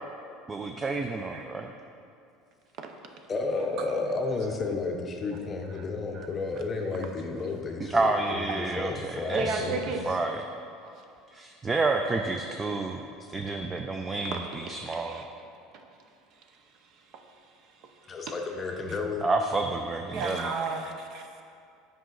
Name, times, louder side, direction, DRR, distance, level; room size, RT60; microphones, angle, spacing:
voice 1, 0.5-1.7 7.8-9.6 10.1-10.4 11.3-13.0 13.3-15.2 19.2-20.5, right 3 dB, 15° right, 4 dB, 0.3 m, -29 dB
voice 2, 3.3-10.0 13.2-13.3 18.1-19.3, left 3 dB, 25° left, 3 dB, 0.6 m, -32 dB
voice 3, 9.3-10.0 10.8-11.0 14.3-15.3 15.7-15.8 17.1-17.2 17.8-17.9 18.3-18.4 18.9-19.0 20.1-21.4, right 4 dB, 50° right, 4 dB, 0.7 m, -34 dB
7.8 x 4.9 x 3.9 m, 2.4 s
cardioid pair, 140°, 0 cm